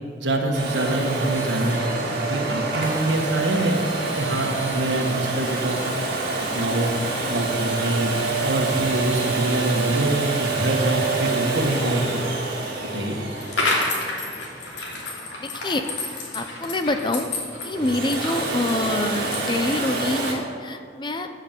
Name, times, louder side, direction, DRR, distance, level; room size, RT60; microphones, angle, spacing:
voice 1, 0.2-1.8 2.2-3.8 4.2-5.8 6.4-6.9 7.3-8.1 8.4-12.4 12.9-13.2, right 1 dB, 75° right, 1 dB, 1.6 m, -24 dB
Domestic sounds home sounds, 0.5-15.3 17.6-20.3, right 3 dB, 55° right, 2.3 m, -27 dB
sound 1, 13.3-20.3, left 2 dB, 85° left, 2.8 m, -30 dB
voice 2, 15.4-15.8 16.3-17.3 17.6-21.3, left 2 dB, 25° left, 7 dB, 0.6 m, -26 dB
14.0 x 6.5 x 7.6 m, 2.2 s
head